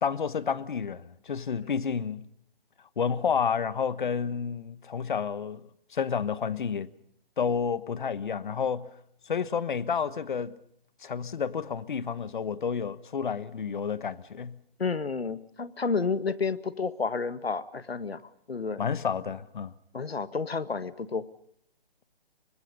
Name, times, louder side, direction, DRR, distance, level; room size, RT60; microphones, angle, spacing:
voice 1, 0.0-2.3 3.0-5.6 5.9-6.9 7.4-8.9 9.3-10.5 11.0-14.6 18.8-19.7, left 6 dB, 55° left, 1.3 m, -30 dB
voice 2, 14.8-18.2 18.5-18.8 19.9-21.3, left 4 dB, 90° left, 1.7 m, -30 dB
30.0 x 24.5 x 5.4 m
hypercardioid pair, 160°, 30 cm